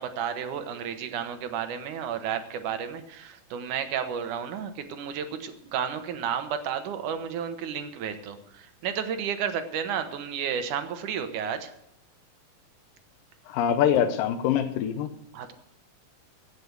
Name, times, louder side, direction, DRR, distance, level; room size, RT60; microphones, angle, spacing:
voice 1, 0.0-11.7 15.3-15.5, right 8 dB, 70° right, 9 dB, 2.5 m, -32 dB
voice 2, 13.5-15.1, left 9 dB, 85° left, 7 dB, 2.4 m, -24 dB
16.0 x 7.3 x 7.8 m, 0.75 s
omnidirectional pair, 3.9 m